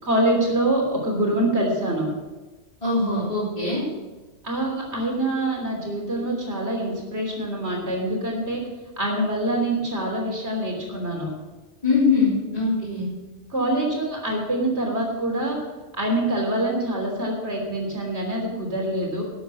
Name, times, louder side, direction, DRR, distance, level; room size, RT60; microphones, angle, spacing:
voice 1, 0.0-2.1 4.4-8.6 9.0-11.3 13.5-15.6 16.0-19.2, right 1 dB, 70° right, 0 dB, 3.6 m, -25 dB
voice 2, 2.8-3.9 11.8-13.1, left 4 dB, 30° left, -10 dB, 3.8 m, -22 dB
12.5 x 8.0 x 7.0 m, 1.2 s
omnidirectional pair, 1.2 m